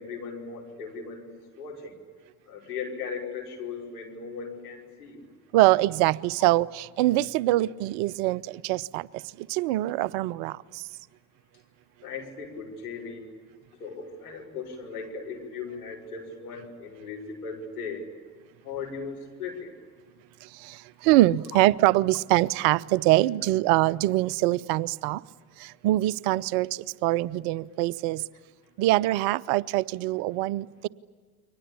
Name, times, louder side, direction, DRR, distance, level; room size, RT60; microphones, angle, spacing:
voice 1, 0.0-1.9 2.5-5.2 12.0-13.3 13.8-18.0 18.6-19.7, left 5 dB, 80° left, 5.4 m, -38 dB
voice 2, 5.5-9.1 9.5-10.5 21.0-25.2 25.8-26.7 27.0-28.2 28.8-30.9, right 17 dB, 60° right, 0.7 m, -23 dB
29.5 x 23.5 x 8.6 m
figure-of-eight pair, 60°, 45 cm